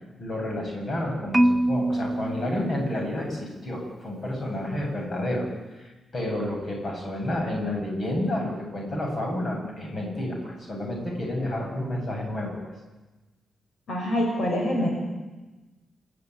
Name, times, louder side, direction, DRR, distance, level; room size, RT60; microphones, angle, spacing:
voice 1, 0.2-5.5 5.7-12.6, left 1 dB, 40° left, 0 dB, 7.7 m, -30 dB
Marimba xylophone, 1.3-3.5, right 1 dB, 10° right, 0.7 m, -25 dB
voice 2, 13.9-14.9, left 1 dB, 60° left, 0 dB, 6.5 m, -25 dB
28.5 x 14.5 x 9.6 m, 1.1 s
wide cardioid pair, 145°, 0 cm